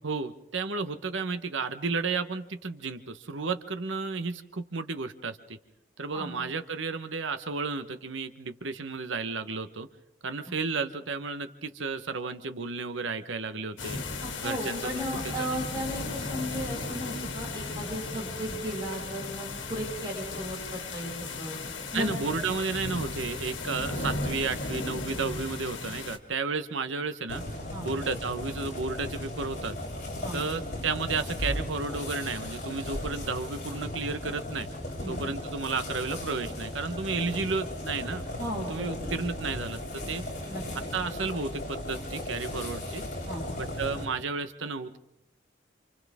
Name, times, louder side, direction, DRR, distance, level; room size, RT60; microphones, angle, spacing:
voice 1, 0.0-5.6 6.0-9.9 10.2-14.0 14.4-15.6 21.9-27.4 27.8-29.8 30.3-34.7 35.1-38.2 38.7-40.2 40.9-43.0 43.6-45.0, right 4 dB, 85° right, 9 dB, 1.1 m, -32 dB
sound 1, 13.8-26.2, left 3 dB, 80° left, 2.3 m, -36 dB
voice 2, 14.2-21.6 21.9-22.3 27.7-27.9 30.2-30.4 35.0-35.2 38.4-39.1 40.4-40.6 43.3-43.4, equal, 20° right, -3 dB, 7.1 m, -35 dB
sound 2, 27.3-44.0, left 1 dB, 40° left, 7.6 m, -36 dB
28.5 x 27.5 x 3.7 m, 0.84 s
head